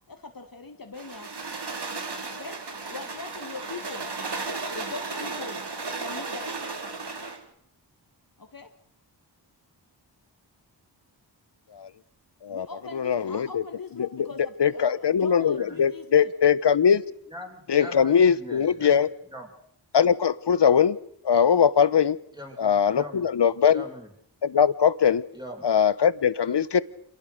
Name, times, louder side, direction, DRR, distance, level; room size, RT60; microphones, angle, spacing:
voice 1, 0.1-1.3 2.3-2.6 2.9-4.1 4.7-5.6 5.9-6.6 8.4-8.7 12.5-16.3, left 4 dB, 50° left, 5 dB, 2.0 m, -40 dB
sound 1, 0.9-7.4, right 3 dB, 65° right, 2.7 m, -34 dB
voice 2, 12.9-13.6 14.0-14.3 14.6-17.0 17.7-19.1 19.9-21.0 21.2-22.2 22.6-23.8 24.4-25.2 25.6-26.8, left 7 dB, 70° left, 17 dB, 1.0 m, -21 dB
voice 3, 17.3-19.5 22.3-23.3 23.7-24.1 25.3-25.7, left 1 dB, 10° right, 2 dB, 6.2 m, -42 dB
26.5 x 18.5 x 6.6 m, 0.70 s
cardioid pair, 55°, 44 cm